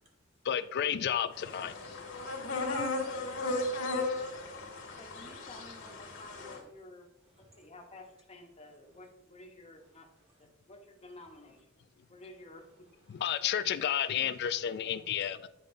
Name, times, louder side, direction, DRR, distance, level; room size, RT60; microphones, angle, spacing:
voice 1, 0.5-2.0 13.1-15.5, left 9 dB, 50° left, 0.3 m, -32 dB
sound 1, 1.3-6.6, left 2 dB, 75° left, 1.5 m, -36 dB
voice 2, 4.0-5.0 7.4-7.7 13.1-13.2, right 1 dB, 30° right, 1.5 m, -67 dB
voice 3, 5.0-7.1 7.6-10.1 10.4-11.6 12.1-12.6, left 2 dB, 30° left, 0.9 m, -52 dB
8.4 x 5.1 x 2.6 m
head